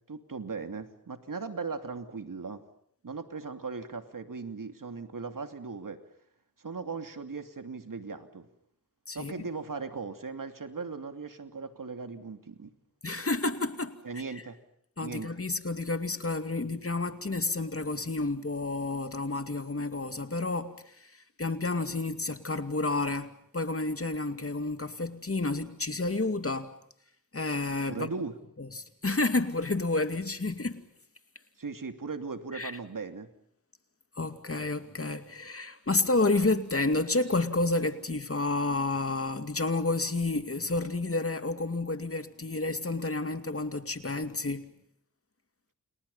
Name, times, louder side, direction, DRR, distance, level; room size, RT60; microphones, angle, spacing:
voice 1, 0.1-2.6 3.0-6.0 6.6-8.5 9.1-12.7 14.0-14.6 15.0-15.3 27.9-28.3 31.6-33.3, right 4 dB, 60° right, 2.9 m, -38 dB
voice 2, 13.0-14.2 15.0-26.7 27.3-28.1 28.6-30.8 32.5-32.7 34.1-44.7, left 2 dB, 40° left, 2.4 m, -30 dB
29.5 x 29.0 x 5.7 m
cardioid pair, 50°, 36 cm